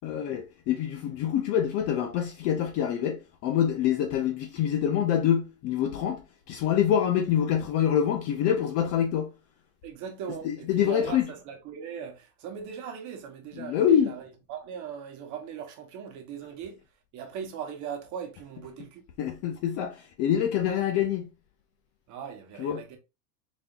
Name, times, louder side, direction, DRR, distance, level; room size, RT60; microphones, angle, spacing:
voice 1, 0.0-6.2 6.5-9.3 10.4-11.3 13.6-14.1 19.2-21.3 22.6-22.8, left 9 dB, 35° left, 0.4 m, -26 dB
voice 2, 9.8-16.8 17.1-19.1 22.1-23.0, right 7 dB, 40° right, 1.2 m, -39 dB
4.1 x 3.4 x 2.4 m
supercardioid pair, 140°, 47 cm